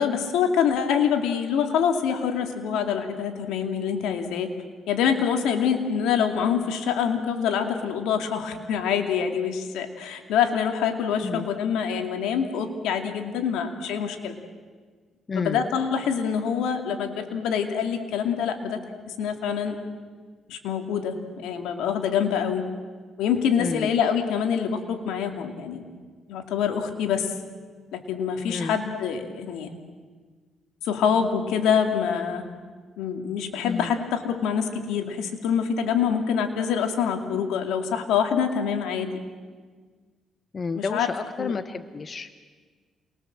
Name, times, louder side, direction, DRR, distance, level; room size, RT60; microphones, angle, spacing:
voice 1, 0.0-4.5 4.9-14.3 15.4-18.8 19.1-19.8 20.5-22.7 23.2-25.8 26.3-27.4 27.9-29.7 30.8-32.5 33.0-39.1 40.7-41.1 41.4-41.6, left 7 dB, 90° left, 5 dB, 2.6 m, -25 dB
voice 2, 15.3-15.6 23.6-23.9 28.5-28.8 33.6-33.9 40.5-42.3, left 4 dB, 35° left, 11 dB, 1.1 m, -31 dB
28.5 x 22.0 x 7.7 m, 1.5 s
cardioid pair, 90°, 0 cm